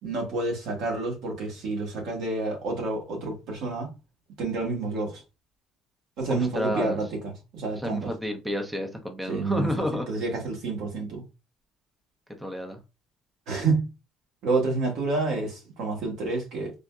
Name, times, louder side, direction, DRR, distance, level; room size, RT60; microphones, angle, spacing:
voice 1, 0.0-3.9 4.4-5.2 6.2-7.1 7.5-8.1 9.3-11.2 13.5-13.9 14.4-16.7, right 3 dB, 75° right, 1.4 m, -29 dB
voice 2, 6.3-7.0 7.8-10.1 12.4-12.8, equal, 10° right, 0.7 m, -30 dB
3.8 x 2.1 x 2.3 m
supercardioid pair, 85°, 0 cm